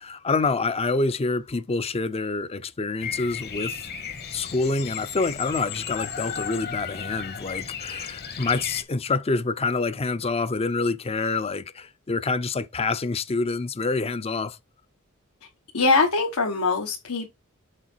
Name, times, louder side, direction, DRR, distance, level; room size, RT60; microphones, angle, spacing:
voice 1, 0.0-3.9 4.3-14.6, left 3 dB, 30° left, 0.5 m, -27 dB
Bird vocalization bird call bird song, 3.0-8.8, left 7 dB, 50° left, 1.1 m, -35 dB
voice 2, 15.7-17.3, left 3 dB, 85° left, 1.3 m, -22 dB
6.6 x 3.9 x 4.5 m
head